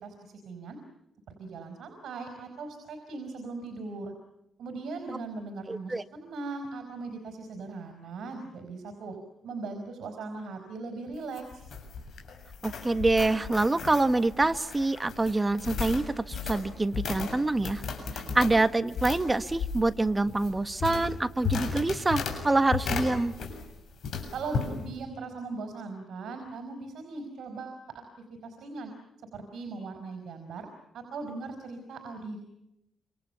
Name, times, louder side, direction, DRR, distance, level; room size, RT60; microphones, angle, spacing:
voice 1, 0.0-0.8 1.4-4.1 4.6-9.2 9.4-11.6 24.3-28.0 28.4-28.9 29.3-30.7 30.9-32.4, right 3 dB, 70° right, 7 dB, 5.0 m, -39 dB
voice 2, 5.7-6.0 12.6-17.8 18.1-23.3, right 2 dB, 15° right, 11 dB, 1.4 m, -26 dB
sound 1, 11.1-23.7 24.0-24.7, left 5 dB, 60° left, 7.3 m, -35 dB
28.5 x 26.5 x 6.9 m, 0.84 s
cardioid pair, 140°, 0 cm